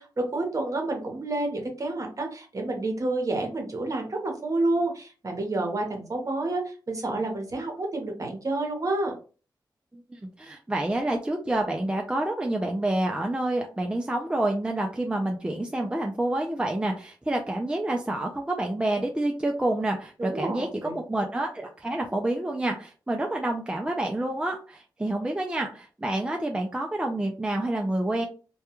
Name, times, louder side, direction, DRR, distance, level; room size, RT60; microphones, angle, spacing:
voice 1, 0.0-9.1 20.2-20.9, right 2 dB, 40° right, 2 dB, 0.9 m, -29 dB
voice 2, 10.4-28.2, right 1 dB, 10° right, 2 dB, 0.4 m, -28 dB
2.2 x 2.2 x 2.9 m, 0.36 s
cardioid pair, 75°, 8 cm